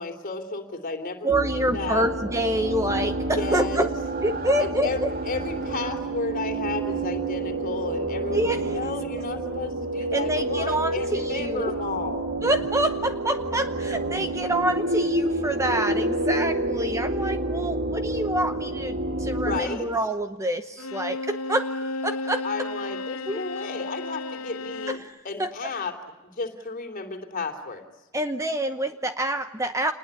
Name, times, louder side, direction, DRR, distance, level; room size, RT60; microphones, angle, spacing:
voice 1, 0.0-1.3 1.5-2.1 3.3-3.9 4.6-12.2 19.4-19.9 22.4-25.0 25.2-25.9 26.2-27.8, left 3 dB, 40° left, 6 dB, 3.2 m, -32 dB
voice 2, 1.2-3.9 4.2-5.1 8.3-8.8 10.1-11.7 12.4-22.4 23.3-23.4 24.9-25.5 28.1-29.9, right 1 dB, 15° right, 8 dB, 0.9 m, -27 dB
sound 1, 1.3-19.6, right 2 dB, 45° right, 2.9 m, -29 dB
Bowed string instrument, 20.8-25.1, left 2 dB, 80° left, 1.1 m, -33 dB
27.5 x 20.5 x 9.9 m, 1.1 s
head